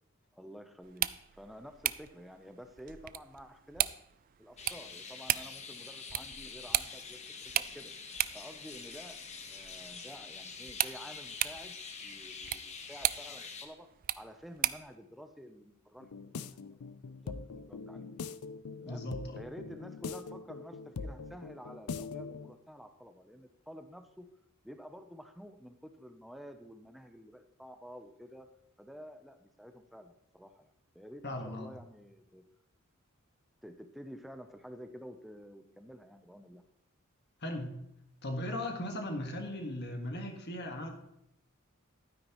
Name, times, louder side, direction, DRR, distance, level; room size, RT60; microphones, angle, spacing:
voice 1, 0.3-4.0 4.4-7.9 8.3-11.8 12.0-13.9 14.2-16.4 16.8-18.2 18.8-19.0 19.4-24.3 24.6-28.5 28.8-32.4 33.6-36.6, equal, ahead, 7 dB, 0.6 m, -50 dB
sound 1, 0.8-15.0, right 13 dB, 40° right, 0.3 m, -38 dB
sound 2, 4.6-13.7, left 5 dB, 30° left, 1.0 m, -46 dB
sound 3, 16.0-22.5, left 4 dB, 85° left, 0.5 m, -42 dB
voice 2, 18.8-19.4 31.2-31.7 37.4-37.8 38.2-40.9, left 1 dB, 50° left, 4 dB, 1.7 m, -38 dB
12.0 x 9.6 x 3.1 m, 0.80 s
head